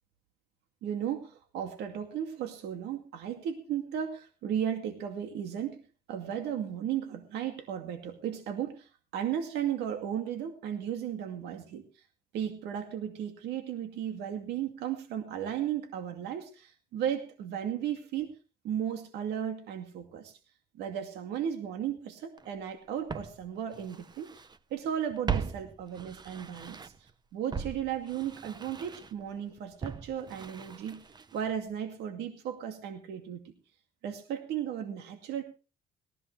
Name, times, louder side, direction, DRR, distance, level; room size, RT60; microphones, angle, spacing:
voice 1, 0.8-5.8 6.1-11.8 12.3-18.3 18.6-20.4 20.8-24.3 24.7-31.0 31.3-33.5 34.0-35.4, right 9 dB, 80° right, 6 dB, 2.4 m, -35 dB
Walk footsteps, 22.4-22.5 23.1-24.6 24.8-27.1 27.5-31.6 31.8-31.9, right 6 dB, 25° right, 0.9 m, -39 dB
18.0 x 14.5 x 3.3 m, 0.33 s
cardioid pair, 110°, 17 cm